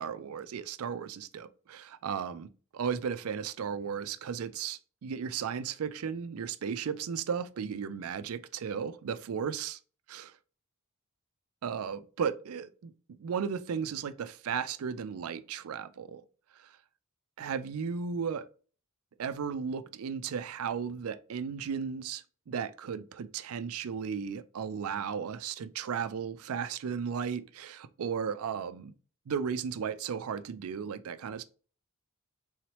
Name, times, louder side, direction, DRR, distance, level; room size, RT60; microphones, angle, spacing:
voice 1, 0.0-9.8 10.1-10.3 11.6-16.2 16.6-16.7 17.4-18.5 19.2-28.9 29.3-31.4, right 7 dB, 70° right, 0.4 m, -35 dB
3.9 x 2.9 x 3.0 m
head